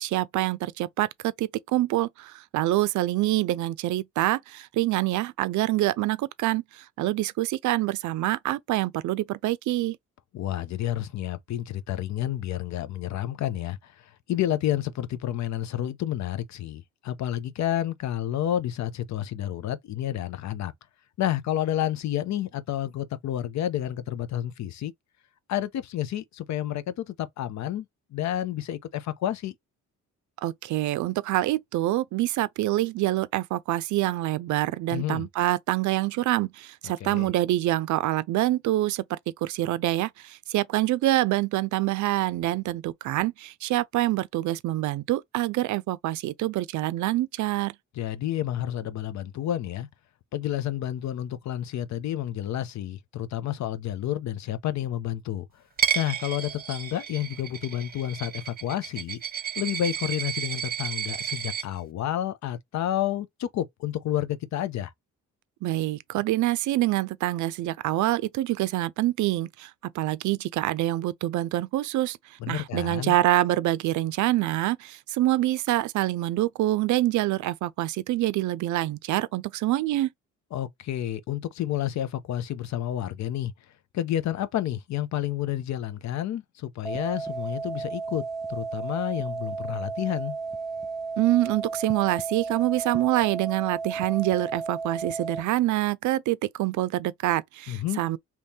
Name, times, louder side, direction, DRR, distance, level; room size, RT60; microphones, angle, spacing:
voice 1, 0.0-10.0 30.4-47.7 65.6-72.2 72.5-80.1 91.2-98.2, right 16 dB, 70° right, 0.4 m, -26 dB
voice 2, 10.3-20.7 21.2-24.9 25.5-29.5 34.9-35.3 37.0-37.3 48.0-49.9 50.3-55.5 55.9-59.2 59.6-64.9 72.4-73.2 80.5-83.5 83.9-88.2 88.5-90.4 97.7-98.0, left 12 dB, 65° left, 0.6 m, -30 dB
Coin (dropping), 55.8-61.6, right 9 dB, 30° right, 0.9 m, -31 dB
sound 1, 86.8-95.4, right 4 dB, ahead, 0.5 m, -33 dB
2.9 x 2.7 x 3.5 m
cardioid pair, 90°, 30 cm